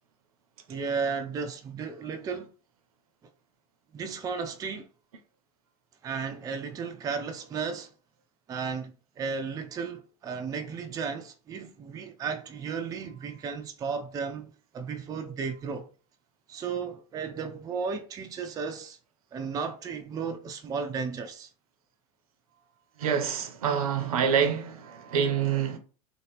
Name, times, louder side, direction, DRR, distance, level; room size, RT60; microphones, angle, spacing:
voice 1, 0.7-2.5 3.9-4.9 6.0-7.9 8.5-15.9 16.5-19.0 19.3-21.5, right 5 dB, 20° right, 0.4 m, -34 dB
voice 2, 23.0-25.8, right 7 dB, 70° right, 0.6 m, -26 dB
2.8 x 2.8 x 2.9 m
hypercardioid pair, 90°, 19 cm